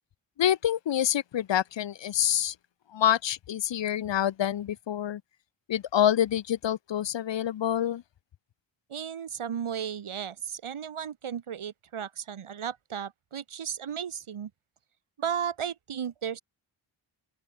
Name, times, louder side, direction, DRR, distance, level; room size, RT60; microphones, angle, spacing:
voice 1, 0.4-2.5 2.9-5.2 5.7-8.0, left 10 dB, 60° left, 0.8 m, -27 dB
voice 2, 8.9-14.5 15.2-16.4, right 8 dB, 85° right, 5.5 m, -34 dB
open air
cardioid pair, 60°, 49 cm